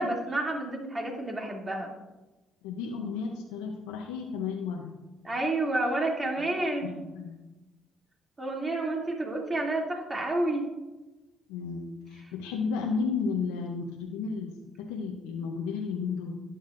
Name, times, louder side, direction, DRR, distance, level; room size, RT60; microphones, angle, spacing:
voice 1, 0.0-1.9 5.2-6.9 8.4-10.6, right 2 dB, 30° right, 0 dB, 2.7 m, -29 dB
voice 2, 2.6-5.0 5.3-5.4 6.8-7.4 11.5-16.3, left 5 dB, 90° left, 1 dB, 0.7 m, -33 dB
12.5 x 9.1 x 2.6 m, 1.1 s
supercardioid pair, 60°, 0 cm